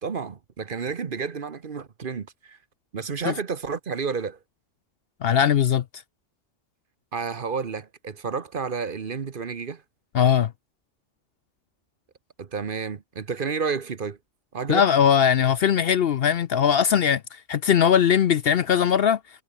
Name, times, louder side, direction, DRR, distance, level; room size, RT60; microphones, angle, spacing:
voice 1, 0.0-2.6 2.9-4.4 7.1-9.8 12.4-14.2 14.5-14.9, right 5 dB, 45° right, 1.1 m, -31 dB
voice 2, 5.2-5.8 10.1-10.5 14.7-17.2 17.5-19.2, left 8 dB, 60° left, 0.8 m, -20 dB
omnidirectional pair, 1.3 m